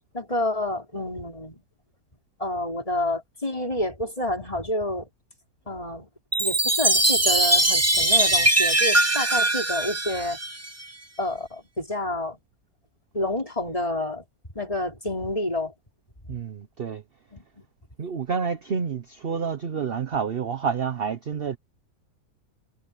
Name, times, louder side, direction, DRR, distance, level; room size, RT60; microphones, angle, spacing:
voice 1, 0.1-1.6 2.4-5.1 5.7-6.1 6.4-10.4 11.2-12.4 13.1-14.2 14.6-15.7 17.3-17.4, left 1 dB, 20° left, 5.3 m, -29 dB
Chime, 6.3-10.9, right 1 dB, 20° right, 0.4 m, -21 dB
voice 2, 16.3-17.0 18.0-21.6, right 6 dB, 45° right, 0.8 m, -29 dB
omnidirectional pair, 1.9 m